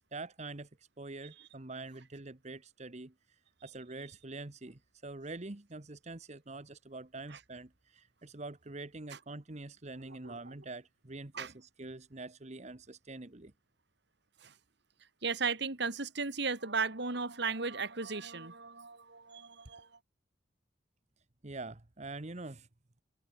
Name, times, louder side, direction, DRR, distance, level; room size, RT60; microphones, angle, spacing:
voice 1, 0.1-13.5 21.4-22.7, right 2 dB, 35° right, 1.2 m, -45 dB
voice 2, 10.0-10.5 11.3-11.5 14.4-14.5 15.2-19.9, right 4 dB, 60° right, 2.4 m, -36 dB
head